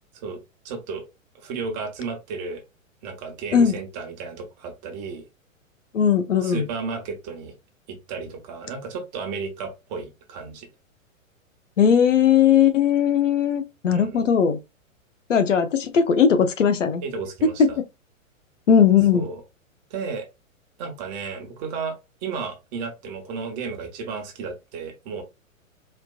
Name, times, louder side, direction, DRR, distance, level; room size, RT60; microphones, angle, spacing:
voice 1, 0.6-1.1 1.3-2.6 3.0-5.2 6.4-7.5 7.9-10.7 13.9-14.2 17.0-17.8 19.1-19.4 19.9-20.3 20.8-25.2, right 5 dB, 30° right, 1.2 m, -33 dB
voice 2, 5.9-6.7 11.8-14.6 15.3-17.0 17.6-17.7 18.7-19.3, left 7 dB, 65° left, 0.8 m, -18 dB
4.3 x 2.7 x 2.4 m
figure-of-eight pair, 110°, 40 cm